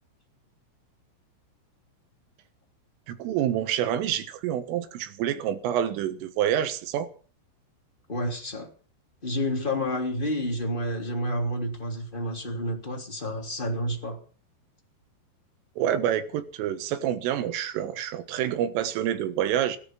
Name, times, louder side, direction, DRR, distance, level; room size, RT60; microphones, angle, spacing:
voice 1, 3.1-7.1 15.8-19.8, right 10 dB, 85° right, 4.0 m, -27 dB
voice 2, 8.1-8.7 9.2-14.2, equal, 15° left, 2.2 m, -29 dB
17.0 x 13.5 x 6.1 m
omnidirectional pair, 5.7 m